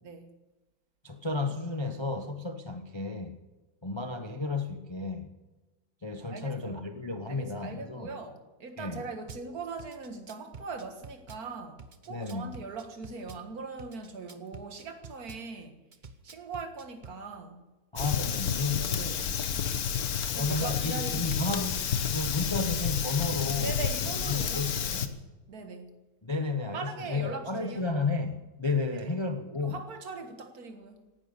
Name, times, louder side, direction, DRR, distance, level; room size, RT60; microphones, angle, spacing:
voice 1, 0.0-0.3 6.3-6.8 7.3-15.8 16.2-17.6 18.8-19.2 20.4-21.5 23.6-25.0 25.5-25.9 26.6-27.9 28.9-29.0 29.6-31.0, right 4 dB, 55° right, 2.0 m, -41 dB
voice 2, 1.0-3.4 3.8-5.3 6.0-8.1 8.8-9.0 12.1-12.5 17.9-19.3 20.3-21.8 22.1-23.7 24.2-25.2 26.2-29.8, left 3 dB, 25° left, 0.6 m, -32 dB
Drum kit / Bass drum, 9.3-9.5 9.8-11.4 11.8-13.4 13.8-15.4 15.9-17.2, right 4 dB, 35° right, 0.9 m, -48 dB
Fire, 18.0-25.1, left 7 dB, 60° left, 1.4 m, -30 dB
18.0 x 12.0 x 6.7 m
omnidirectional pair, 2.0 m